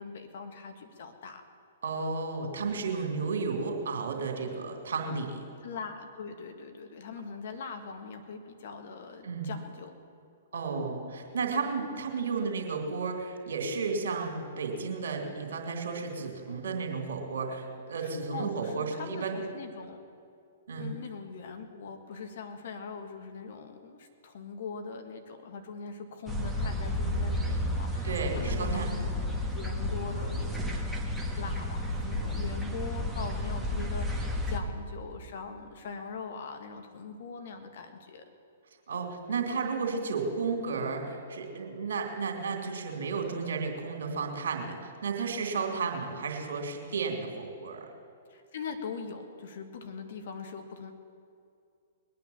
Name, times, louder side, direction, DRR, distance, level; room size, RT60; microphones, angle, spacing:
voice 1, 0.0-1.4 5.6-10.0 18.0-20.0 20.8-29.3 29.5-30.9 31.3-38.2 48.3-50.9, left 5 dB, 60° left, 6 dB, 1.8 m, -41 dB
voice 2, 1.8-5.4 9.2-9.5 10.5-19.4 20.7-20.9 28.0-28.9 38.9-47.8, right 4 dB, 70° right, 3 dB, 2.7 m, -33 dB
sound 1, 26.3-34.6, left 1 dB, 5° right, 1.7 m, -32 dB
21.0 x 9.1 x 7.0 m, 2.5 s
hypercardioid pair, 120°, 0 cm